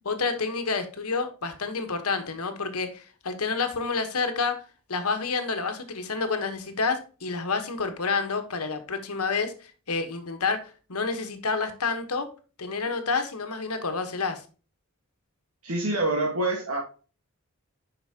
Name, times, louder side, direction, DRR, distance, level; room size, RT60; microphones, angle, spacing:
voice 1, 0.0-4.6 4.9-12.3 12.6-14.4, left 4 dB, 80° left, 1.2 m, -29 dB
voice 2, 15.6-16.8, right 2 dB, 75° right, 1.5 m, -26 dB
8.3 x 5.6 x 2.9 m
head